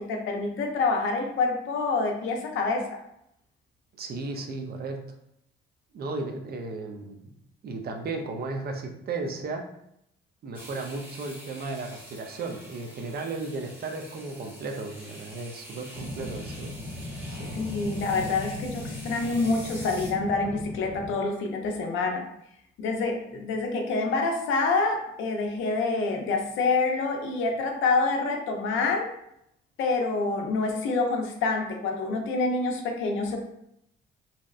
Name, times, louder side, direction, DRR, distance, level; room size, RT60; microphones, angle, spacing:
voice 1, 0.0-3.0 17.5-22.3 22.8-29.1 29.8-33.4, left 3 dB, 85° left, 2 dB, 0.5 m, -27 dB
voice 2, 4.0-5.0 5.9-7.2 7.6-9.7 10.4-16.7 17.4-17.6, right 3 dB, 50° right, 4 dB, 0.4 m, -35 dB
sound 1, 10.5-20.1, equal, 10° right, 0.8 m, -46 dB
sound 2, 15.9-21.1, left 1 dB, 45° left, 0.9 m, -37 dB
2.7 x 2.0 x 2.4 m, 0.77 s
cardioid pair, 90°, 20 cm